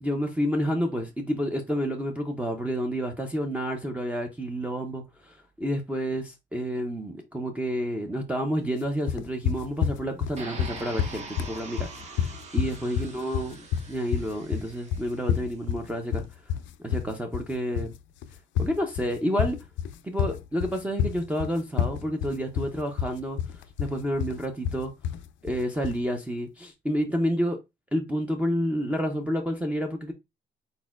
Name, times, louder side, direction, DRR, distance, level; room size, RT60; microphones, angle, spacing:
voice 1, 0.0-12.3 12.5-16.2 16.8-17.9 18.6-19.6 20.0-23.4 23.8-24.9 25.4-27.6 27.9-30.1, equal, 5° right, 0.5 m, -29 dB
sound 1, 9.1-26.0, left 8 dB, 80° left, 0.4 m, -29 dB
sound 2, 10.4-15.4, right 4 dB, 35° right, 1.1 m, -43 dB
4.3 x 4.1 x 2.4 m
cardioid pair, 150°, 19 cm